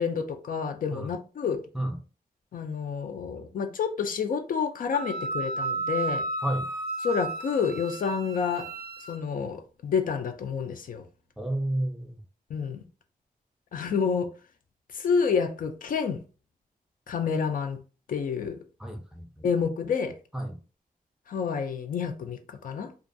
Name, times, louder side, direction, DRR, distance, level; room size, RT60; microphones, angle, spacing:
voice 1, 0.0-1.6 2.5-6.3 7.0-8.7 9.1-11.0 12.5-12.8 13.7-14.3 14.9-16.2 17.1-17.8 18.1-18.6 19.4-20.1 21.3-22.9, left 6 dB, 65° left, 0.4 m, -29 dB
Wind instrument woodwind instrument, 4.9-9.2, right 3 dB, 85° right, 0.4 m, -33 dB
voice 2, 11.4-12.2 18.8-19.5 20.3-20.6, right 1 dB, 5° right, 0.5 m, -31 dB
2.4 x 2.2 x 2.6 m
wide cardioid pair, 140°, 15 cm